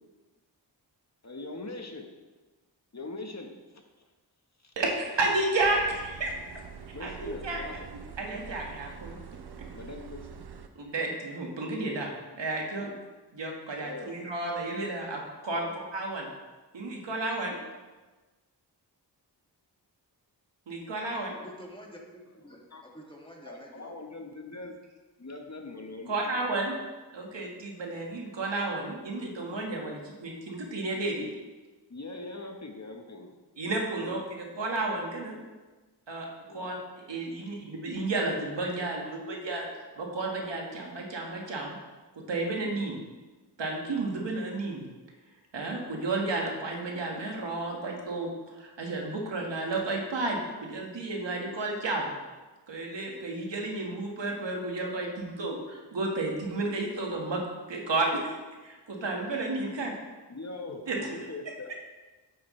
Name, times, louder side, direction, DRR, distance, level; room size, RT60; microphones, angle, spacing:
voice 1, 1.2-2.1 2.9-3.5 4.6-4.7 6.9-7.8 9.7-10.2 12.8-13.0 13.8-14.3 15.6-15.8 22.5-22.8 23.4-24.8 25.2-26.2 27.4-27.5 29.5-29.7 31.2-31.3 31.9-33.3 33.9-34.2 36.5-36.7 60.3-60.8 61.1-61.7, left 3 dB, 40° left, 3 dB, 1.2 m, -42 dB
voice 2, 4.7-6.3 7.0-7.6 8.2-9.2 10.7-12.9 13.3-15.7 15.9-16.3 16.7-17.5 20.7-21.3 26.1-26.8 27.1-31.2 33.6-35.4 36.1-36.3 36.5-36.8 37.1-39.7 40.0-41.8 42.1-43.0 43.6-44.9 45.5-48.3 48.5-52.2 52.7-57.4 57.7-58.2 58.6-59.9 60.9-61.1, right 2 dB, 85° right, 0 dB, 1.7 m, -32 dB
sound 1, 5.6-10.7, right 6 dB, 65° right, 0.8 m, -45 dB
voice 3, 21.4-23.9, equal, 10° left, -1 dB, 1.9 m, -48 dB
9.6 x 7.7 x 3.2 m, 1.2 s
cardioid pair, 55°, 43 cm